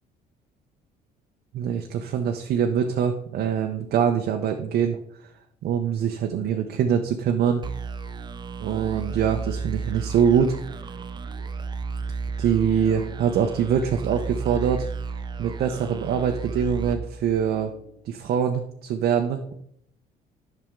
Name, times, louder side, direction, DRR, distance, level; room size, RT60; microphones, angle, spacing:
voice 1, 1.5-5.0 5.6-7.6 8.6-10.6 12.4-14.9 15.4-17.7 18.1-19.5, right 8 dB, 65° right, 4 dB, 0.7 m, -24 dB
sound 1, 7.6-17.9, right 5 dB, 25° right, 0.5 m, -33 dB
8.9 x 5.9 x 3.7 m, 0.71 s
cardioid pair, 110°, 17 cm